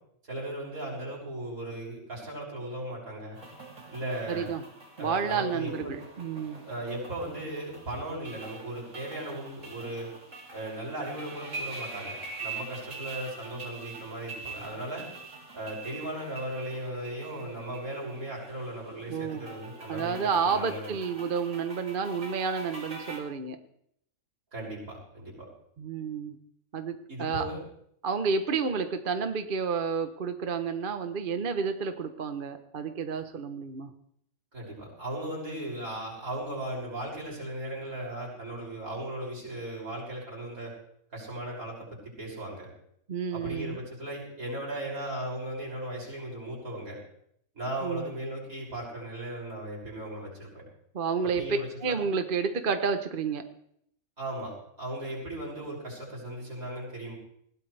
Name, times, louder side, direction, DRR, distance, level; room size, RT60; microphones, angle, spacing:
voice 1, 0.3-3.4 3.9-4.5 5.0-5.9 6.7-10.1 10.5-15.0 15.5-20.2 20.5-20.9 24.5-25.5 27.1-27.6 34.5-40.7 41.1-42.7 43.3-47.0 47.6-50.5 51.2-52.0 54.2-57.2, right 1 dB, 80° right, -4 dB, 7.1 m, -37 dB
sound 1, 3.3-23.2, right 3 dB, 60° right, 3.6 m, -44 dB
voice 2, 4.3-4.6 5.0-6.6 19.1-19.5 19.9-23.6 25.8-26.4 26.7-27.5 28.0-33.9 43.1-43.8 47.8-48.1 50.9-51.4 51.8-53.4, right 5 dB, 40° right, 8 dB, 1.0 m, -30 dB
20.5 x 17.0 x 3.4 m, 0.70 s
omnidirectional pair, 1.5 m